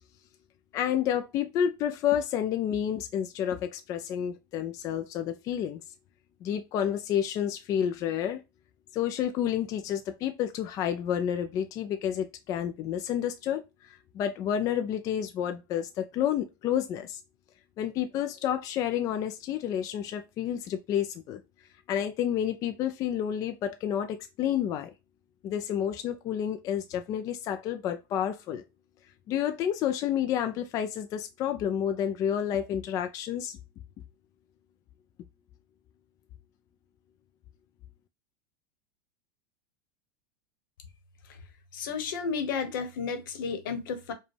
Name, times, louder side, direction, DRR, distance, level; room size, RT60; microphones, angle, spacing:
voice 1, 0.7-5.8 6.4-8.4 8.9-13.6 14.1-17.2 17.8-21.4 21.9-24.9 25.4-28.6 29.3-33.6, left 9 dB, 30° left, 0.3 m, -30 dB
voice 2, 41.7-44.1, left 5 dB, 75° left, 1.0 m, -32 dB
4.9 x 2.2 x 3.2 m
supercardioid pair, 150°, 11 cm